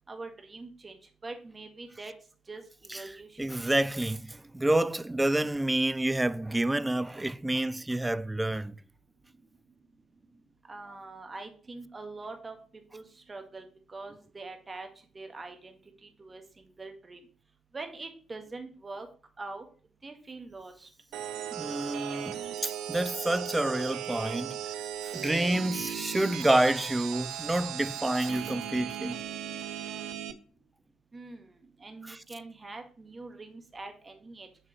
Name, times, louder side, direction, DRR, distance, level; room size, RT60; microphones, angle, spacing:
voice 1, 0.1-1.0 1.2-2.1 2.5-3.4 10.7-12.6 12.9-14.9 15.1-15.7 16.0-16.4 16.8-17.2 17.7-19.1 19.4-19.6 20.0-20.9 31.1-31.5 31.8-34.5, right 3 dB, 30° right, 1.7 m, -43 dB
voice 2, 3.4-8.8 21.5-24.6 25.0-29.2 32.0-32.2, right 1 dB, 15° right, 0.4 m, -28 dB
sound 1, 21.1-30.3, right 10 dB, 65° right, 0.5 m, -37 dB
7.1 x 6.1 x 3.2 m
figure-of-eight pair, 40°, 0 cm